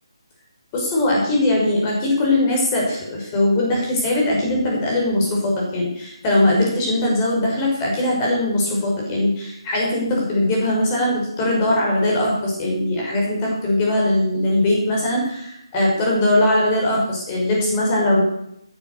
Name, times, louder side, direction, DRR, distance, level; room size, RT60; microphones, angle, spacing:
voice 1, 0.7-18.2, left 1 dB, 20° left, -2 dB, 6.2 m, -20 dB
14.5 x 11.0 x 7.0 m, 0.76 s
figure-of-eight pair, 155°, 3 cm